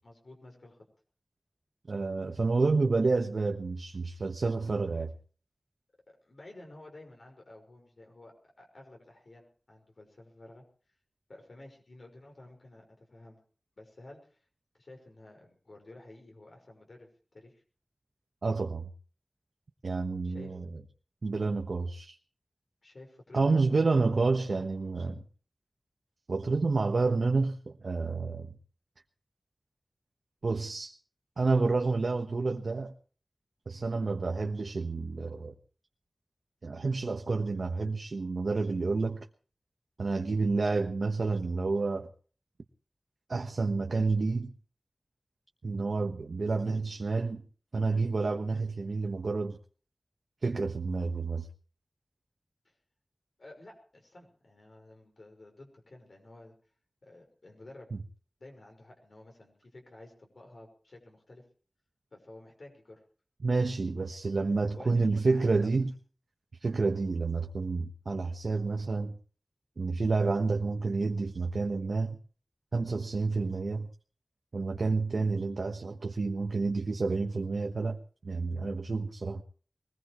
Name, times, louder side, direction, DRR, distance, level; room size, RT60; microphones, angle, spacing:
voice 1, 0.0-0.9 6.1-11.0 11.3-13.4 13.8-14.5 14.7-17.6 20.3-20.6 22.8-24.0 24.3-24.7 52.6-52.8 53.4-56.5 57.0-57.9 58.4-61.4 62.1-63.0 64.1-64.3 64.8-65.7, left 2 dB, 70° left, 5.6 m, -52 dB
voice 2, 1.9-5.1 18.4-18.9 19.8-20.6 21.2-22.2 23.3-25.2 26.3-28.5 30.4-31.0 31.4-32.9 33.7-35.5 36.6-39.3 40.0-42.1 43.3-44.5 45.6-47.4 47.7-49.6 50.4-51.5 63.4-65.9 66.6-69.1 69.8-72.2 72.7-73.9 74.5-79.4, right 3 dB, 85° right, 1.2 m, -29 dB
22.0 x 20.0 x 3.2 m
wide cardioid pair, 60°, 0 cm